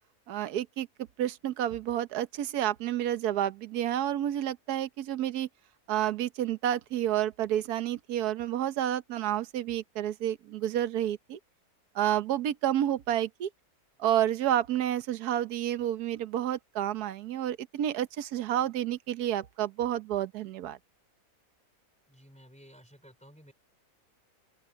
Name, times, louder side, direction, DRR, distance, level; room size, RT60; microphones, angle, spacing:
voice 1, 0.3-0.9 1.2-5.5 5.9-11.4 11.9-13.5 14.0-20.8, right 11 dB, 75° right, 1.4 m, -30 dB
voice 2, 22.1-23.5, equal, 5° left, 3.1 m, -54 dB
open air
omnidirectional pair, 1.7 m